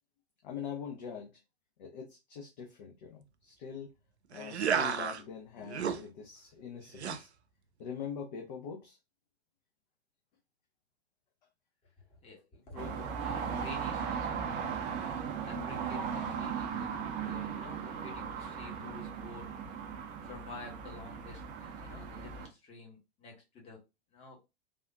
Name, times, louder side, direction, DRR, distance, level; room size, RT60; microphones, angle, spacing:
voice 1, 0.4-1.4 1.8-3.9 4.3-7.3 7.8-9.0, left 7 dB, 40° left, 0.6 m, -43 dB
sound 1, 4.3-5.2 5.6-6.0 7.0-7.2, right 7 dB, 75° right, 0.5 m, -32 dB
voice 2, 12.1-14.8 15.1-16.9 17.1-19.5 20.2-23.8 24.1-24.4, left 3 dB, 20° left, 1.0 m, -50 dB
sound 2, 12.8-22.5, right 7 dB, 20° right, 0.6 m, -37 dB
3.4 x 2.4 x 2.4 m
figure-of-eight pair, 105°, 34 cm